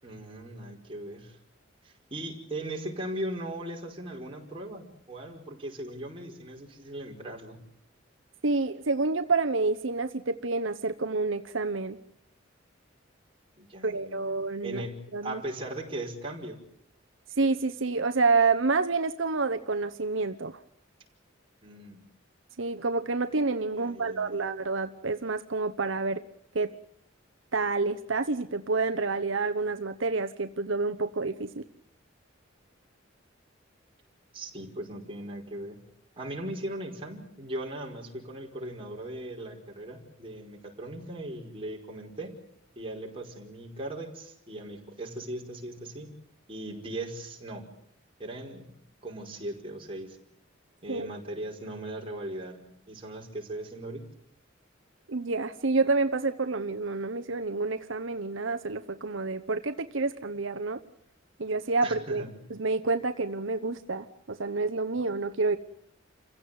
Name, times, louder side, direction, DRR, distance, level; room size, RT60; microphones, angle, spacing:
voice 1, 0.0-1.4 1.8-7.6 13.6-14.3 14.6-16.6 21.6-22.0 23.7-24.5 34.3-35.8 36.2-42.3 42.7-46.1 46.5-47.7 48.2-48.7 49.0-50.2 50.8-54.0 61.8-62.3, right 1 dB, 25° right, 0 dB, 5.0 m, -38 dB
voice 2, 8.4-12.0 13.8-14.8 15.1-15.4 17.4-20.6 22.6-26.2 26.5-26.7 27.5-31.7 50.9-51.1 55.1-60.8 61.4-62.2 62.5-65.6, right 3 dB, 75° right, 7 dB, 1.0 m, -28 dB
29.0 x 16.0 x 9.4 m, 0.68 s
head